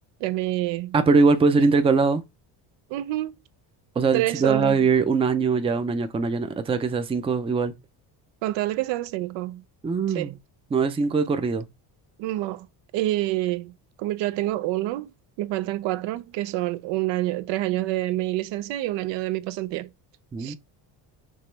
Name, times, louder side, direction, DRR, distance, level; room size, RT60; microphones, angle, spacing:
voice 1, 0.2-1.0 2.9-3.3 4.1-4.8 8.4-9.6 10.1-10.4 12.2-12.7 12.9-15.1 15.4-19.9 20.4-20.6, right 16 dB, 85° right, 0.5 m, -27 dB
voice 2, 0.9-2.2 4.0-7.7 9.8-10.4 10.7-11.7 20.3-20.6, right 4 dB, 15° right, 0.4 m, -21 dB
5.4 x 3.0 x 3.1 m
cardioid pair, 135°, 44 cm